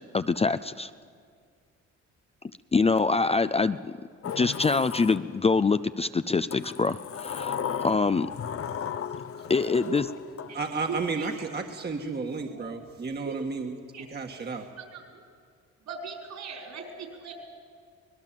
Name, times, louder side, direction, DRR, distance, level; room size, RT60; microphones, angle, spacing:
voice 1, 0.1-0.9 2.7-3.8 4.4-8.3 9.5-10.0, left 4 dB, 20° left, 13 dB, 0.5 m, -24 dB
Sliding door, 4.2-5.7 6.5-11.1, left 8 dB, 50° left, 0.9 m, -36 dB
voice 2, 9.3-10.0 10.5-11.5 12.5-12.7 13.2-13.4 13.9-14.3 14.8-15.2 15.9-17.3, right 5 dB, 70° right, 2 dB, 5.1 m, -40 dB
voice 3, 10.5-14.7, right 4 dB, 35° right, 3 dB, 1.6 m, -33 dB
25.0 x 19.5 x 7.5 m, 2.1 s
cardioid pair, 90°, 30 cm